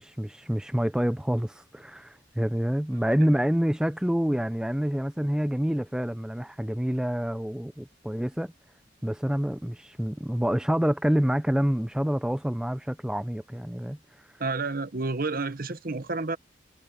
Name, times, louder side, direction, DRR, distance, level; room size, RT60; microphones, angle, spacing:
voice 1, 0.0-8.5 9.0-14.3, equal, 5° right, 0.4 m, -27 dB
voice 2, 14.4-16.4, right 3 dB, 50° right, 1.0 m, -30 dB
head